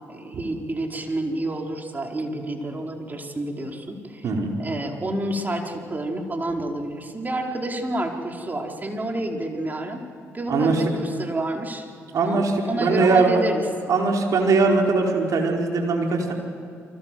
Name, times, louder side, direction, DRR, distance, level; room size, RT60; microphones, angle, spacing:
voice 1, 0.1-4.3 4.6-10.0 10.3-11.9 12.2-13.6, right 1 dB, 25° right, 2 dB, 4.7 m, -29 dB
voice 2, 10.5-10.8 12.1-12.5 12.8-13.4 13.9-16.3, right 4 dB, 55° right, 1 dB, 5.0 m, -20 dB
29.5 x 24.5 x 7.9 m, 2.3 s
hypercardioid pair, 50°, 7 cm